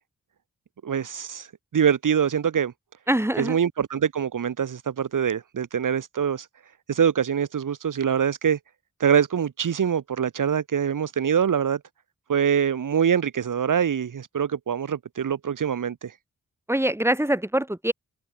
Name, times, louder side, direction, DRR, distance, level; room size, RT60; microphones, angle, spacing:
voice 1, 0.8-1.5 1.7-2.7 3.4-6.5 6.9-8.6 9.0-11.8 12.3-16.1, right 8 dB, 80° right, 1.6 m, -24 dB
voice 2, 3.1-3.6 16.7-17.9, right 1 dB, 10° right, 3.1 m, -23 dB
open air
cardioid pair, 55°, 32 cm